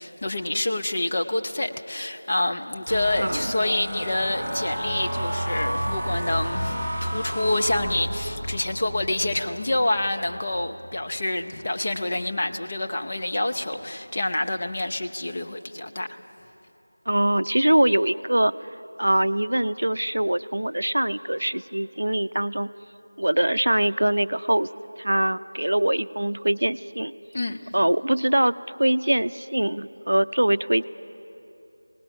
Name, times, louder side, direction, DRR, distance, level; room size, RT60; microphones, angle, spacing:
voice 1, 0.0-16.1 27.3-27.7, left 2 dB, 25° left, 4 dB, 0.6 m, -27 dB
sound 1, 2.9-12.2 12.7-13.0 13.4-13.8, equal, 5° left, 2.8 m, -31 dB
voice 2, 17.1-18.5 19.0-22.7 23.2-24.7 25.0-27.1 27.7-30.8, right 1 dB, 65° right, 14 dB, 0.5 m, -23 dB
25.5 x 18.5 x 6.1 m, 2.9 s
figure-of-eight pair, 175°, 0 cm